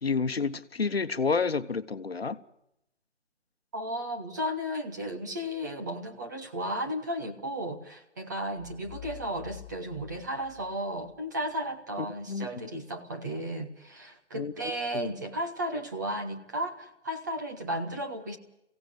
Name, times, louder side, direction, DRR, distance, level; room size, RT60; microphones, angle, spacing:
voice 1, 0.0-2.4 12.0-12.6 14.3-15.1, left 4 dB, 60° left, 1.2 m, -30 dB
voice 2, 3.7-18.4, equal, 15° right, 1.0 m, -34 dB
sound 1, 8.6-11.2, left 9 dB, 15° left, 3.3 m, -47 dB
23.5 x 16.5 x 8.2 m
figure-of-eight pair, 155°, 35 cm